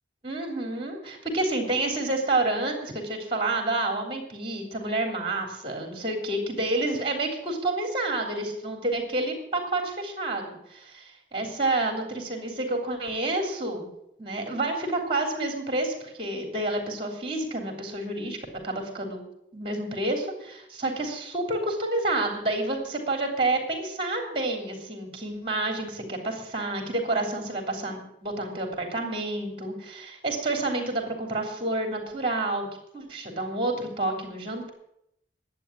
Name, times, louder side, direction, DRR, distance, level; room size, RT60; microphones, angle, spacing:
voice 1, 0.2-13.9 14.2-18.4 18.6-19.2 19.5-32.7 32.9-34.7, right 2 dB, 30° right, 3 dB, 3.3 m, -29 dB
11.5 x 8.5 x 9.8 m, 0.78 s
head